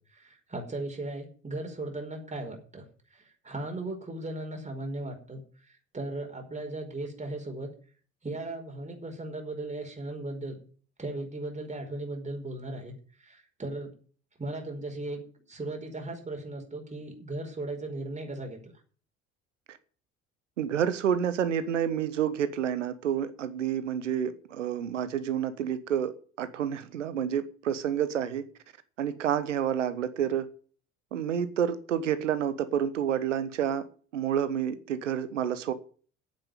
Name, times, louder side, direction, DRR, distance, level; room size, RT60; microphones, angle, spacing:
voice 1, 0.1-2.8 3.1-7.7 8.2-10.6 11.0-12.9 13.2-13.9 14.4-15.2 15.5-18.6, right 2 dB, 20° right, 5.0 m, -37 dB
voice 2, 20.6-28.5 29.0-30.5 31.1-33.9 34.1-35.7, right 9 dB, 80° right, 1.2 m, -29 dB
8.9 x 8.8 x 9.2 m
figure-of-eight pair, 60°, 36 cm